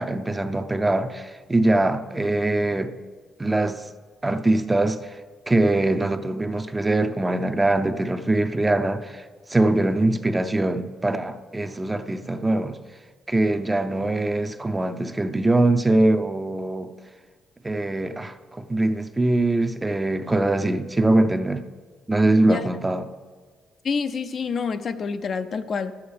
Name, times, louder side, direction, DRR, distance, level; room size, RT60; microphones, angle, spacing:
voice 1, 0.0-2.9 3.4-3.8 4.2-5.2 5.5-12.8 13.3-16.9 17.6-21.6 22.1-23.1, right 2 dB, 15° right, 0.6 m, -22 dB
voice 2, 23.8-26.0, left 5 dB, 50° left, 0.5 m, -27 dB
10.5 x 7.2 x 6.6 m
cardioid pair, 90°, 0 cm